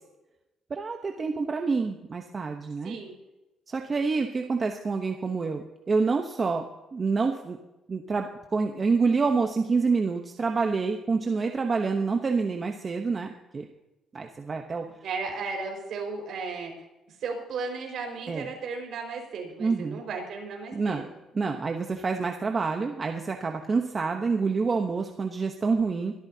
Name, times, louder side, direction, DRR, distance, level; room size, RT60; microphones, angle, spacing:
voice 1, 0.7-3.0 3.7-6.6 6.9-7.6 7.9-13.6 14.1-14.8 18.3-18.5 19.6-20.0 20.7-21.0 21.3-26.1, right 4 dB, 25° right, 3 dB, 0.9 m, -27 dB
voice 2, 2.8-3.1 15.0-16.7 17.2-21.0, right 4 dB, 55° right, 2 dB, 4.9 m, -35 dB
22.5 x 13.0 x 2.8 m, 0.99 s
cardioid pair, 145°, 0 cm